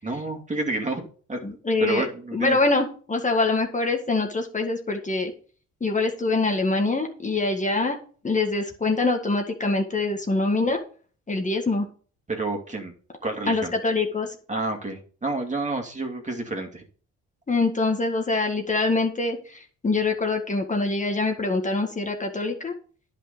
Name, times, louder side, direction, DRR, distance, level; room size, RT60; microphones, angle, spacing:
voice 1, 0.0-1.4 1.8-2.6 12.3-12.9 13.2-13.7 14.5-16.8, right 2 dB, 25° right, 2 dB, 2.4 m, -29 dB
voice 2, 1.4-2.1 2.3-5.3 5.8-8.0 8.2-10.8 11.3-11.9 13.5-14.4 17.5-22.7, left 3 dB, 25° left, 3 dB, 1.7 m, -24 dB
10.0 x 5.9 x 5.2 m, 0.42 s
cardioid pair, 90°, 30 cm